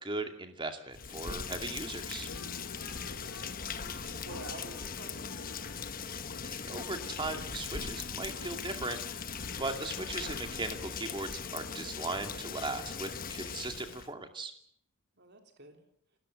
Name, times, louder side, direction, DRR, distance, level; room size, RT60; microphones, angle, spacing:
voice 1, 0.0-2.3 6.4-9.0 9.6-14.5, right 2 dB, 20° right, 6 dB, 2.4 m, -38 dB
Rain, 0.9-14.1, left 6 dB, 40° left, 1.1 m, -40 dB
sound 1, 2.0-11.2, left 3 dB, 70° left, 1.7 m, -51 dB
voice 2, 2.9-3.2 3.8-5.3 15.2-15.8, right 2 dB, 50° right, 4 dB, 3.4 m, -49 dB
29.5 x 14.0 x 7.6 m, 0.65 s
head